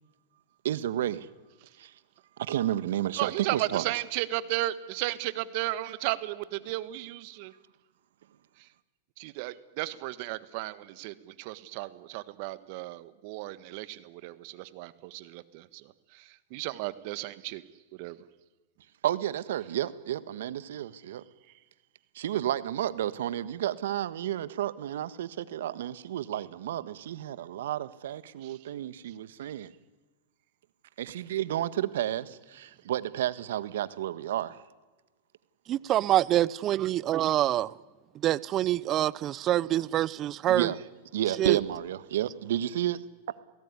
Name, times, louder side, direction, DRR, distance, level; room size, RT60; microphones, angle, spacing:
voice 1, 0.6-1.3 1.8-1.9 2.4-3.8 19.0-21.2 22.1-29.7 31.0-34.6 40.5-40.8 41.1-43.0, right 12 dB, 75° right, 1.5 m, -31 dB
voice 2, 3.2-7.5 8.6-8.7 9.2-17.6 17.9-18.2 28.4-28.6, right 17 dB, 55° right, 1.6 m, -35 dB
voice 3, 35.7-37.7 38.2-40.7 41.4-41.6, right 13 dB, 35° right, 0.7 m, -26 dB
28.0 x 17.5 x 9.9 m
hypercardioid pair, 120°, 0 cm